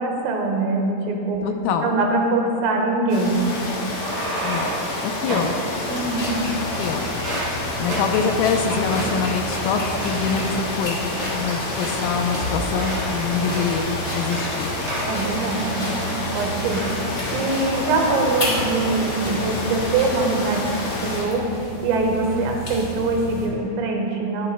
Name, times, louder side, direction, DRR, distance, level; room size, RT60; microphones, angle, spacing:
voice 1, 0.0-1.5 1.8-3.5 5.9-6.4 15.1-15.6 15.9-16.8 17.3-21.5 21.8-24.5, right 3 dB, 80° right, 1 dB, 3.9 m, -23 dB
voice 2, 1.4-1.9 4.4-4.7 5.0-5.5 6.8-7.1 7.8-14.7, left 6 dB, 80° left, 4 dB, 3.2 m, -25 dB
sound 1, 3.1-21.2, left 2 dB, 60° left, 4.7 m, -29 dB
sound 2, 4.0-4.9 5.3-5.5 6.2-6.8 7.1-7.5 7.9-8.1 8.4-8.5 8.9-9.1 9.5-9.7 10.0-10.8 11.1-11.3 11.7-13.1 13.4-13.9 14.2-14.5 14.9-16.3 16.7-16.9 17.2-17.7 18.1-18.4, right 2 dB, 40° right, 3.7 m, -33 dB
sound 3, 5.9-23.5, equal, 25° left, 2.0 m, -32 dB
21.0 x 11.0 x 2.3 m, 2.6 s
omnidirectional pair, 5.9 m